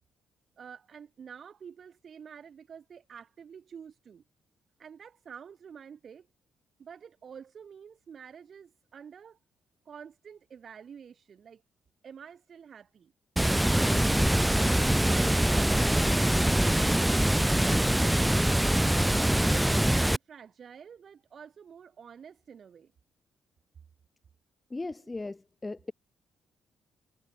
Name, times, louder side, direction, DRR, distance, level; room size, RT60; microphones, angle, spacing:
voice 1, 0.6-4.2 4.8-6.3 6.8-9.4 9.9-11.6 12.0-13.1 18.5-18.9 19.2-19.7 20.2-22.9 25.0-25.1, right 7 dB, 50° right, 2.3 m, -48 dB
Water, 13.4-20.2, right 1 dB, 5° right, 0.5 m, -24 dB
voice 2, 24.7-25.9, left 2 dB, 20° left, 1.7 m, -37 dB
cardioid pair, 90°, 0 cm